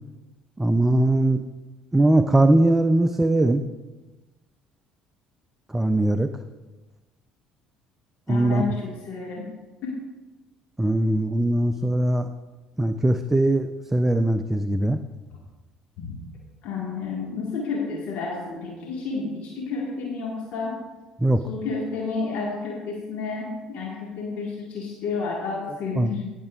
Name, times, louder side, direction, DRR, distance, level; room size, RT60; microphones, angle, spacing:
voice 1, 0.6-1.4 1.9-3.7 5.7-6.4 8.3-8.6 10.8-12.3 12.8-15.0 21.2-21.4 26.0-26.1, right 1 dB, 10° right, 9 dB, 0.5 m, -20 dB
voice 2, 8.3-9.5 9.8-10.0 16.0-16.2 16.6-20.8 21.5-26.3, left 4 dB, 60° left, -2 dB, 1.7 m, -30 dB
17.5 x 6.6 x 2.4 m, 1.2 s
hypercardioid pair, 55°, 3 cm